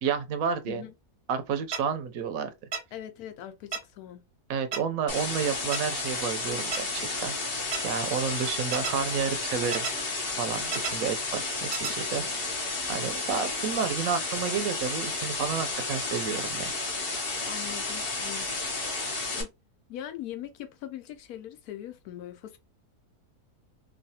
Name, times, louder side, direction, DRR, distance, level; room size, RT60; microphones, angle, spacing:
voice 1, 0.0-0.8 1.3-2.5 4.5-9.9 10.4-12.2 12.9-16.7, right 7 dB, 70° right, 0.9 m, -31 dB
sound 1, 1.7-1.8 2.7-2.8 3.7-3.8 4.7-4.8 5.7-5.8 6.7-6.8 7.7-7.8 8.7-8.9 9.7-9.9 10.7-10.9 11.7-11.9, right 6 dB, 90° right, 0.5 m, -31 dB
voice 2, 2.9-4.2 11.9-12.3 17.5-19.5 19.9-22.6, left 11 dB, 75° left, 1.1 m, -42 dB
sound 2, 5.1-19.4, left 3 dB, 45° left, 0.8 m, -32 dB
3.1 x 2.3 x 2.7 m
omnidirectional pair, 1.7 m